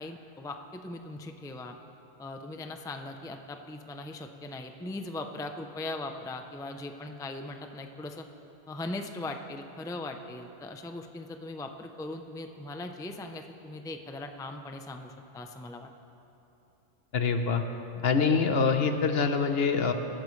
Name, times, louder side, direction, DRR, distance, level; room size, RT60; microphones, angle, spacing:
voice 1, 0.0-1.8 2.2-8.3 8.7-15.9 18.0-18.1, left 2 dB, 5° left, 5 dB, 0.5 m, -39 dB
voice 2, 17.1-17.6 18.0-19.9, left 5 dB, 60° left, 7 dB, 1.0 m, -25 dB
23.0 x 13.5 x 3.2 m, 2.9 s
omnidirectional pair, 1.2 m